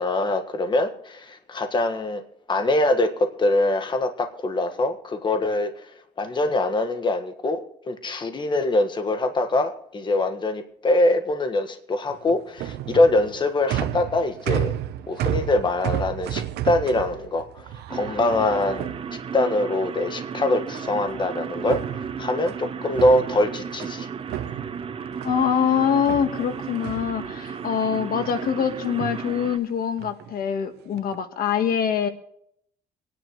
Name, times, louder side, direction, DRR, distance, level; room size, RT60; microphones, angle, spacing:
voice 1, 0.0-2.2 2.5-5.9 6.2-14.7 15.1-17.5 17.9-18.9 19.3-24.1, left 2 dB, 25° left, 8 dB, 1.5 m, -23 dB
sound 1, 12.1-19.6 20.7-21.2 21.5-24.0 24.3-25.5 26.0-27.7 28.1-28.6 28.9-29.3 30.0-30.3 30.9-31.2, right 11 dB, 75° right, 0.9 m, -32 dB
sound 2, 17.9-29.6, right 6 dB, 35° right, 0.9 m, -34 dB
voice 2, 25.2-32.1, left 8 dB, 60° left, 8 dB, 1.4 m, -24 dB
26.5 x 10.0 x 3.2 m, 0.71 s
cardioid pair, 110°, 17 cm